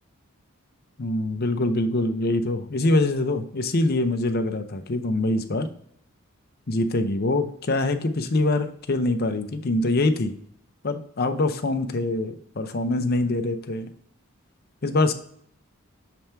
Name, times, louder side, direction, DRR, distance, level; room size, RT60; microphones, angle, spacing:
voice 1, 1.0-5.7 6.7-10.3 10.8-13.9 14.8-15.1, left 2 dB, 45° left, 8 dB, 0.6 m, -24 dB
7.1 x 3.4 x 4.4 m, 0.64 s
head